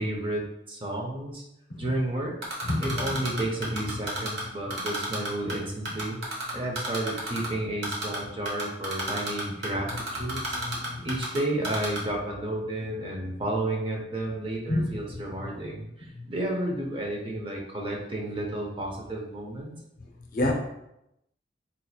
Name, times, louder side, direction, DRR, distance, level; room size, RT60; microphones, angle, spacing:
voice 1, 0.0-1.4 1.8-2.4 2.8-6.2 6.5-10.6 11.0-15.9 16.3-19.7, right 1 dB, 25° right, -1 dB, 0.6 m, -31 dB
Typing, 2.4-4.4 4.7-5.5 5.9-7.5 7.8-8.2 8.5-11.4 11.6-12.0, right 2 dB, 60° right, 0.9 m, -31 dB
voice 2, 2.6-3.3 10.3-11.1 14.7-14.9 16.2-16.3 20.3-20.5, left 1 dB, 45° left, 0 dB, 0.6 m, -29 dB
4.0 x 2.9 x 2.3 m, 0.84 s
head